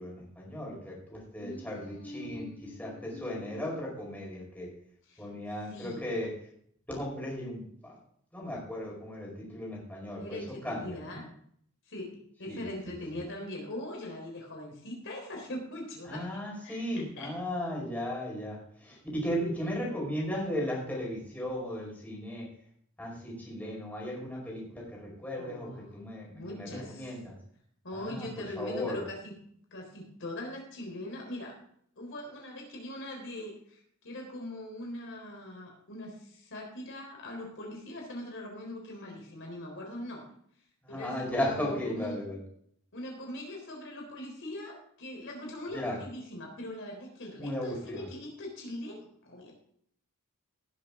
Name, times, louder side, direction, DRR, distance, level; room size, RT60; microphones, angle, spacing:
voice 1, 0.0-4.7 5.2-6.3 6.9-8.0 8.3-11.2 12.5-12.6 13.1-13.2 16.1-22.5 23.0-27.4 27.9-29.0 40.8-42.4 45.7-46.0 47.4-48.1, left 1 dB, 5° left, -3 dB, 4.9 m, -36 dB
voice 2, 1.4-3.8 5.1-5.3 5.7-6.1 10.2-11.2 11.9-12.1 12.4-16.3 16.6-17.3 25.4-25.9 26.3-27.2 27.8-29.3 29.7-31.5 32.0-40.3 40.9-42.2 42.9-49.5, left 1 dB, 60° left, 0 dB, 3.8 m, -41 dB
18.0 x 7.8 x 3.7 m, 0.66 s
head